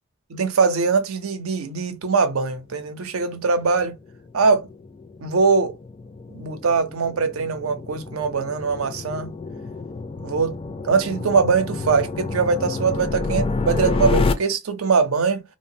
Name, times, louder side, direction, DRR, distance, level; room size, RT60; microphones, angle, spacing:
voice 1, 0.3-4.0 4.3-4.7 5.2-5.8 6.3-9.3 10.2-10.5 10.9-15.4, right 5 dB, 85° right, 0.6 m, -22 dB
sound 1, 3.2-14.3, left 3 dB, 25° left, 0.3 m, -29 dB
2.9 x 2.1 x 2.6 m
head